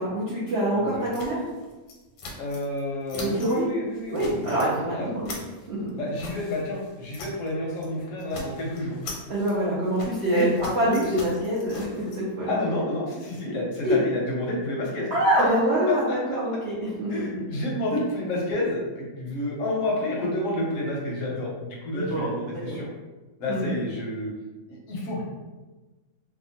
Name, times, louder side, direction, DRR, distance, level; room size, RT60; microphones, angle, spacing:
voice 1, 0.0-1.4 3.1-3.7 4.1-5.3 5.7-5.9 9.3-12.6 13.8-14.0 15.1-17.2 21.9-22.8 23.5-23.7, right 1 dB, 90° right, -7 dB, 0.5 m, -25 dB
voice 2, 0.7-1.1 2.4-4.6 4.8-5.5 6.0-9.0 10.3-11.1 12.5-15.1 15.4-16.2 17.1-22.9 23.4-24.3 24.7-25.2, left 1 dB, 65° left, -2 dB, 0.8 m, -30 dB
sound 1, 1.1-2.8 3.1-3.6 3.9-4.7 5.0-7.5 7.8-7.9 8.2-12.2, left 2 dB, 85° left, 1.2 m, -42 dB
2.8 x 2.1 x 2.7 m, 1.2 s
omnidirectional pair, 1.8 m